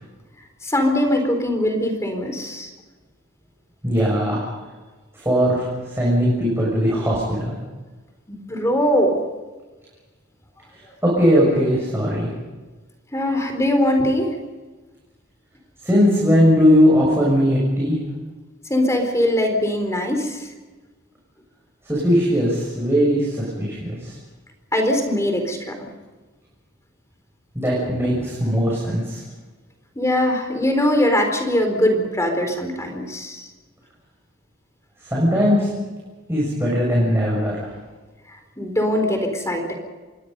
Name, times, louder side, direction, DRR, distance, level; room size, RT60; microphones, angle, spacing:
voice 1, 0.6-2.7 8.3-9.2 13.1-14.4 18.7-20.5 24.7-25.9 27.8-28.2 30.0-33.5 38.3-39.7, left 1 dB, 15° left, 4 dB, 4.0 m, -21 dB
voice 2, 3.8-4.4 5.2-7.5 11.0-12.3 15.8-18.0 21.9-24.2 27.6-29.2 35.1-35.7 36.3-37.7, equal, 10° right, -5 dB, 6.9 m, -19 dB
27.5 x 22.5 x 5.5 m, 1.3 s
head